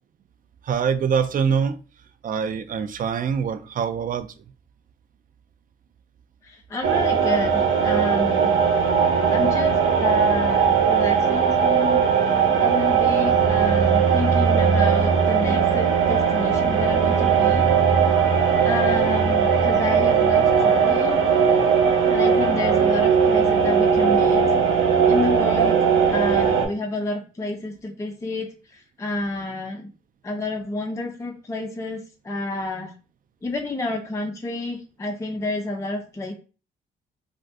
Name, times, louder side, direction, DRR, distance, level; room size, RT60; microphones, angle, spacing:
voice 1, 0.6-1.8 2.2-4.3, right 6 dB, 45° right, 11 dB, 0.4 m, -24 dB
voice 2, 6.4-8.5 9.3-12.0 12.6-17.7 18.6-21.2 22.1-24.4 25.1-25.8 26.1-29.9 30.2-32.9 33.4-36.3, left 2 dB, 15° left, 3 dB, 0.4 m, -29 dB
sound 1, 6.8-26.7, right 6 dB, 75° right, 0.9 m, -19 dB
2.5 x 2.5 x 3.4 m, 0.35 s
cardioid pair, 90°, 20 cm